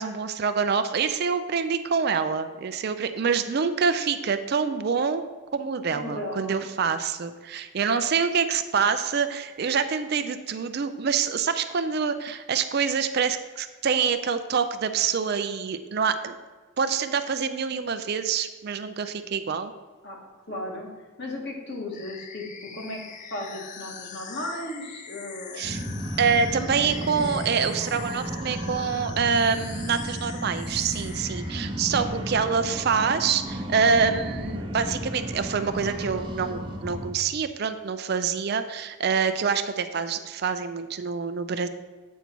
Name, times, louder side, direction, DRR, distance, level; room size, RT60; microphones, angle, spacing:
voice 1, 0.0-5.2 5.5-16.4 16.8-19.7 25.6-25.8 26.2-41.7, right 6 dB, 50° right, 9 dB, 0.4 m, -26 dB
voice 2, 5.9-6.6 20.0-20.2 20.5-20.9 21.2-23.0 23.3-25.6, left 1 dB, 50° left, -1 dB, 1.7 m, -35 dB
sound 1, 21.9-31.6, left 7 dB, 35° left, 0.4 m, -43 dB
sound 2, 25.6-37.1, right 1 dB, 25° right, 0.7 m, -33 dB
8.3 x 5.3 x 4.5 m, 1.3 s
head